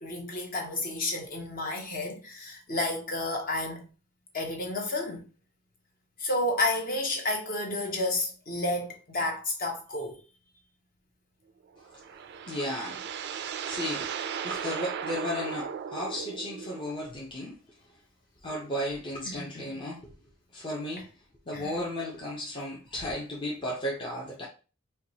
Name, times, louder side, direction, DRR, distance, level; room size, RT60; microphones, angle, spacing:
voice 1, 0.0-3.8 4.3-5.2 6.2-10.2 19.3-19.7 21.5-21.7, left 2 dB, 45° left, 1.0 m, -31 dB
sound 1, 11.7-16.9, right 7 dB, 55° right, 0.3 m, -36 dB
voice 2, 11.8-12.2 12.4-13.0 13.6-14.2 14.4-17.6 18.4-20.1 20.5-21.1 21.5-24.5, left 1 dB, 25° left, 0.7 m, -34 dB
4.5 x 2.3 x 2.7 m
head